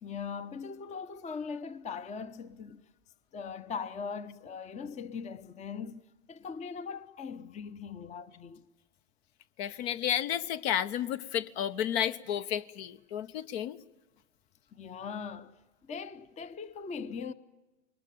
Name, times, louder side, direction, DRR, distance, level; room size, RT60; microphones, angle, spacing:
voice 1, 0.0-2.8 3.3-8.6 14.7-15.6 15.9-17.3, left 5 dB, 20° left, 0.8 m, -40 dB
voice 2, 9.6-13.8, left 10 dB, 55° left, 1.1 m, -32 dB
23.0 x 20.0 x 9.1 m
hypercardioid pair, 105°, 39 cm